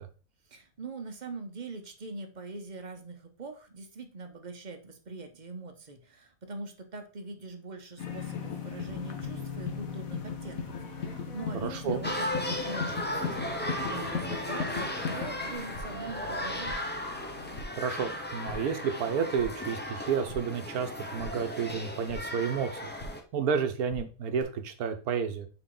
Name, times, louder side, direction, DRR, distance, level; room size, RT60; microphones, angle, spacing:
voice 1, 0.5-16.8, right 3 dB, 35° right, 6 dB, 0.9 m, -42 dB
sound 1, 8.0-17.6, left 6 dB, 70° left, 1.5 m, -37 dB
voice 2, 11.6-12.0 17.7-22.9 23.3-25.5, right 6 dB, 85° right, 7 dB, 1.4 m, -31 dB
sound 2, 12.0-23.2, left 1 dB, 10° left, 0.7 m, -36 dB
sound 3, 15.6-16.1 16.4-17.0 17.3-17.9 18.2-18.8 19.1-19.7 20.0-20.6 20.9-22.4 22.7-23.4 23.6-24.4, equal, 40° left, 1.7 m, -45 dB
6.3 x 4.7 x 3.9 m, 0.36 s
omnidirectional pair, 1.5 m